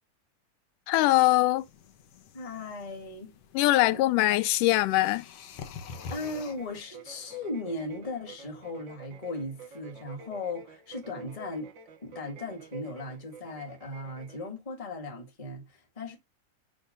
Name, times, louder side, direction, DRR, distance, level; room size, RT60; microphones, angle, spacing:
voice 1, 0.9-1.6 3.5-5.3, left 17 dB, 85° left, 2.2 m, -22 dB
sound 1, 1.6-6.8, left 5 dB, 60° left, 1.9 m, -47 dB
voice 2, 2.3-4.0 6.1-11.7 12.0-16.2, left 2 dB, 15° left, 1.5 m, -37 dB
sound 2, 5.9-14.5, right 5 dB, 60° right, 1.4 m, -49 dB
7.8 x 3.6 x 5.3 m
omnidirectional pair, 3.6 m